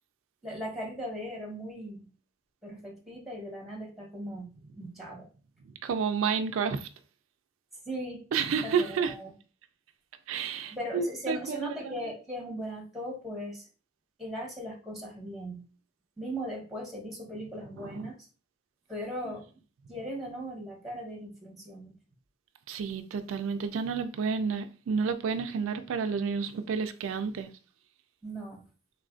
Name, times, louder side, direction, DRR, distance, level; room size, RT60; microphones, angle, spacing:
voice 1, 0.4-2.1 2.6-4.5 4.8-5.3 7.9-8.2 8.6-9.3 10.7-13.6 14.2-15.6 16.2-18.2 18.9-19.4 19.9-21.9 28.2-28.6, equal, ahead, 0.9 m, -38 dB
voice 2, 5.8-6.9 8.3-9.1 10.3-11.9 17.8-18.1 22.7-27.5, right 6 dB, 70° right, 0.3 m, -30 dB
3.5 x 2.4 x 2.4 m
head